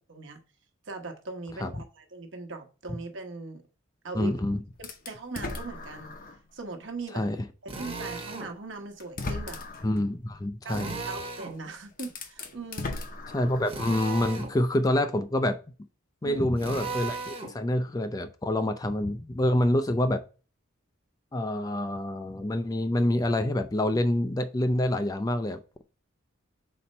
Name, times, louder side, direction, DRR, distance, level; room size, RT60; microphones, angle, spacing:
voice 1, 0.1-0.4 0.8-3.6 4.0-4.4 4.8-6.1 6.5-7.3 7.6-9.6 10.6-13.1 16.2-16.4, right 3 dB, 60° right, 1.1 m, -40 dB
voice 2, 4.1-4.6 7.1-7.4 9.8-10.9 13.3-15.6 16.2-20.2 21.3-25.8, left 1 dB, 15° left, 0.3 m, -27 dB
sound 1, 4.8-6.5 7.0-7.1 8.3-8.4 9.0-10.0 11.4-11.5 11.9-13.9, left 3 dB, 40° left, 0.7 m, -37 dB
Drill, 7.7-8.5 10.7-11.6 13.7-14.5 16.6-17.5, right 3 dB, 25° right, 1.0 m, -36 dB
4.3 x 4.2 x 5.3 m
head